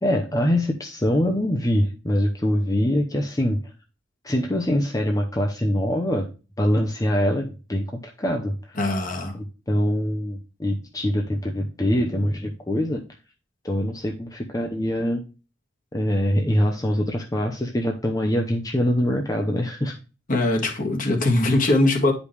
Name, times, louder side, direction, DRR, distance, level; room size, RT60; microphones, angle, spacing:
voice 1, 0.0-3.6 4.2-6.3 6.6-7.9 8.2-8.8 9.3-13.0 13.6-15.2 15.9-19.9, equal, 20° left, 0.8 m, -24 dB
voice 2, 8.8-9.3 20.3-22.1, left 2 dB, 45° left, 1.9 m, -21 dB
10.0 x 5.2 x 3.3 m
head